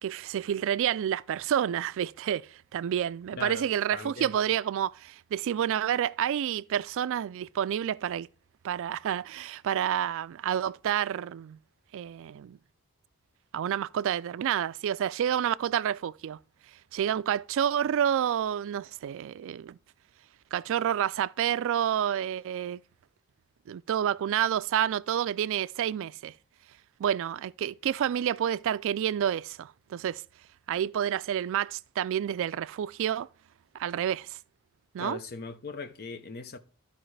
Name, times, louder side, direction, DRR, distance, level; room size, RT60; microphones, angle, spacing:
voice 1, 0.0-8.3 8.6-11.6 11.9-12.6 13.5-16.4 16.9-19.8 20.5-22.8 23.7-26.3 27.0-30.2 30.7-33.3 33.7-34.4 34.9-35.2, right 9 dB, 60° right, 0.3 m, -29 dB
voice 2, 3.3-4.3 35.0-36.6, left 4 dB, 45° left, 0.7 m, -39 dB
13.5 x 5.0 x 3.2 m
head